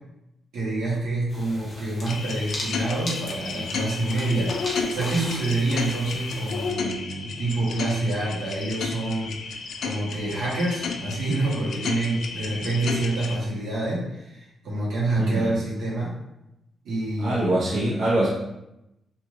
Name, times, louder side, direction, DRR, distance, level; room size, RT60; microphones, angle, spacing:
voice 1, 0.5-9.3 9.8-16.2 16.8-17.5, right 2 dB, 90° right, -7 dB, 1.1 m, -27 dB
sound 1, 1.3-6.7, left 1 dB, 35° left, 0.7 m, -38 dB
sound 2, 2.1-13.4, left 5 dB, 65° left, 0.3 m, -32 dB
voice 2, 15.2-15.6 17.2-18.3, right 1 dB, 75° right, -10 dB, 0.9 m, -23 dB
3.1 x 2.5 x 2.4 m, 0.88 s
cardioid pair, 140°, 0 cm